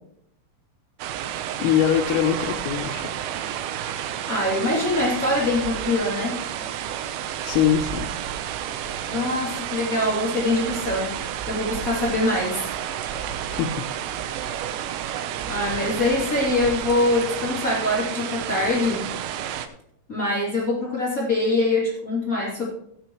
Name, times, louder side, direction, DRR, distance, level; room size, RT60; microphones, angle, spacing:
sound 1, 1.0-19.7, right 10 dB, 85° right, 3.3 m, -31 dB
voice 1, 1.6-3.1 7.4-8.1 13.5-13.7, left 10 dB, 80° left, 0 dB, 3.4 m, -22 dB
voice 2, 4.3-6.4 9.1-11.1 11.5-12.6 15.5-19.1 20.1-22.7, left 2 dB, 25° left, -5 dB, 2.1 m, -23 dB
17.0 x 9.2 x 3.1 m, 0.71 s
omnidirectional pair, 5.9 m